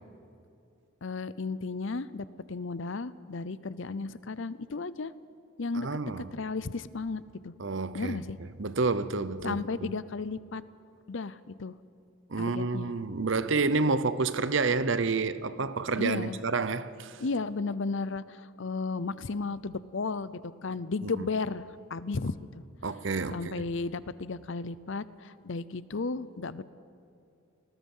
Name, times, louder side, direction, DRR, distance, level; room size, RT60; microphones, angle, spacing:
voice 1, 1.0-5.1 5.6-5.9 6.3-7.5 7.9-8.4 9.4-10.6 11.1-11.8 12.4-12.9 16.0-16.4 17.2-22.6 23.3-26.6, left 3 dB, 60° left, 0.6 m, -34 dB
voice 2, 5.7-6.2 7.6-8.2 8.6-9.9 12.3-17.2 21.0-21.3 22.8-23.6, right 4 dB, 60° right, 0.8 m, -29 dB
28.5 x 20.0 x 5.6 m
head